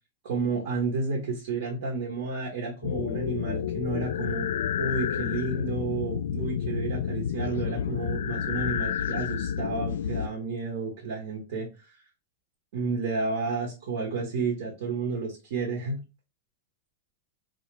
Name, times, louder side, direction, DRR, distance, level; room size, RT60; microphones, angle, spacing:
voice 1, 0.2-4.5 4.8-12.0 12.7-16.0, right 4 dB, 60° right, -1 dB, 1.0 m, -31 dB
sound 1, 2.8-10.3, left 8 dB, 80° left, 0.3 m, -30 dB
3.7 x 2.3 x 3.0 m, 0.31 s
supercardioid pair, 160°, 0 cm